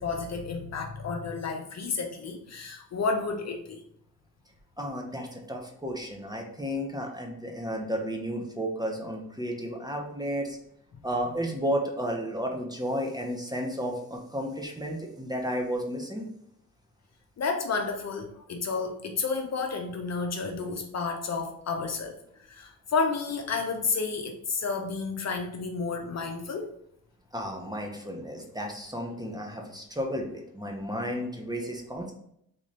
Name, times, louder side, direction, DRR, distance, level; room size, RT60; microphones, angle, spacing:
voice 1, 0.0-3.8 10.9-11.0 17.4-26.7, left 4 dB, 50° left, 3 dB, 0.6 m, -31 dB
voice 2, 4.8-10.6 11.0-16.2 27.3-32.1, equal, 10° right, 1 dB, 0.9 m, -33 dB
3.8 x 2.6 x 3.3 m, 0.73 s
supercardioid pair, 55°, 35 cm